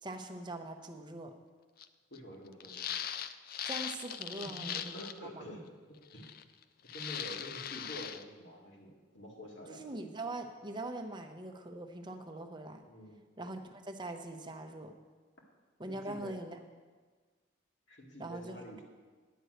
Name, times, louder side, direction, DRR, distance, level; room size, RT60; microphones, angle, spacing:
voice 1, 0.0-1.4 3.6-5.0 5.3-5.4 9.7-12.9 13.4-14.9 15.8-16.6 18.2-18.8, right 2 dB, 25° right, 5 dB, 0.7 m, -42 dB
sound 1, 1.8-1.9 2.1-2.2 2.6-5.2 6.1-6.6 6.9-8.2, left 9 dB, 50° left, 0.4 m, -40 dB
voice 2, 2.1-2.9 4.2-6.3 6.9-9.9 12.9-13.2 15.9-16.4 17.9-18.8, equal, 65° left, -2 dB, 2.1 m, -47 dB
10.5 x 5.4 x 7.9 m, 1.4 s
head